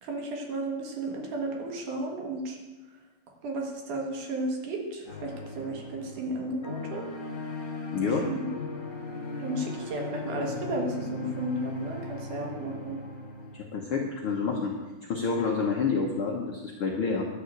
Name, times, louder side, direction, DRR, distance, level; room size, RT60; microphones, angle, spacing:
voice 1, 0.0-2.6 3.4-7.1 8.3-8.5 9.4-13.0, right 2 dB, 65° right, 1 dB, 3.1 m, -33 dB
sound 1, 5.0-13.6, left 3 dB, 20° left, 1.5 m, -38 dB
voice 2, 7.9-8.3 13.5-14.7 15.1-17.2, left 4 dB, 65° left, -1 dB, 1.3 m, -28 dB
11.0 x 6.6 x 8.2 m, 1.2 s
omnidirectional pair, 4.0 m